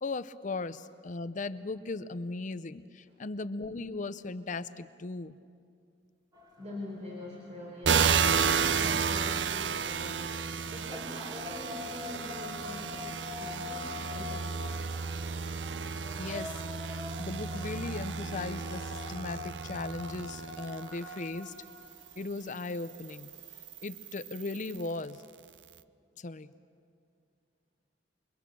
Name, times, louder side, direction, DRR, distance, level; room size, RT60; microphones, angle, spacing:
voice 1, 0.0-5.4 16.2-16.6 17.2-21.5 22.2-23.3 23.8-25.2 26.2-26.5, left 3 dB, 45° left, 13 dB, 0.6 m, -37 dB
sound 1, 6.3-23.9, left 3 dB, 20° right, 2.5 m, -46 dB
voice 2, 6.6-14.6, left 1 dB, 40° right, -3 dB, 4.2 m, -44 dB
sound 2, 7.8-21.2 21.9-24.9, right 6 dB, 70° right, 0.7 m, -32 dB
28.5 x 23.5 x 6.8 m, 2.3 s
head